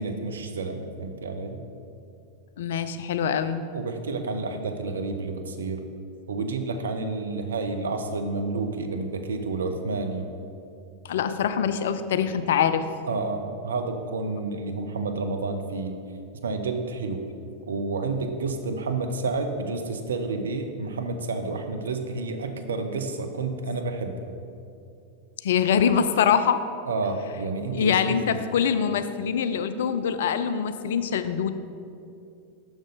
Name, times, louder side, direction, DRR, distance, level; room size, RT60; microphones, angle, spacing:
voice 1, 0.0-1.6 3.7-5.8 6.3-10.3 13.1-16.0 16.4-17.2 17.6-24.1 26.9-28.4, right 3 dB, 75° right, 6 dB, 0.6 m, -30 dB
voice 2, 2.6-3.6 11.0-12.8 25.4-26.6 27.7-31.5, left 7 dB, 65° left, 11 dB, 0.4 m, -24 dB
6.3 x 6.1 x 3.9 m, 2.5 s
figure-of-eight pair, 90°, 0 cm